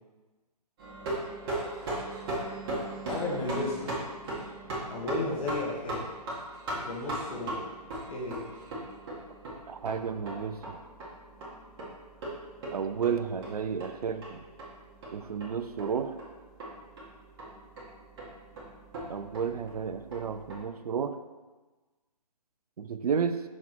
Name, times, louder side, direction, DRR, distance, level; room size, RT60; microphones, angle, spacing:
sound 1, 0.8-20.6, right 1 dB, 35° right, 1.9 m, -39 dB
voice 1, 3.1-4.0 4.8-6.1 6.7-7.7 8.1-8.5, left 2 dB, 55° left, -4 dB, 1.5 m, -34 dB
voice 2, 9.7-10.8 12.7-14.4 15.1-16.2 19.1-21.2 22.8-23.4, right 6 dB, 65° right, 10 dB, 0.5 m, -32 dB
6.3 x 3.6 x 4.5 m, 1.2 s
figure-of-eight pair, 140°, 21 cm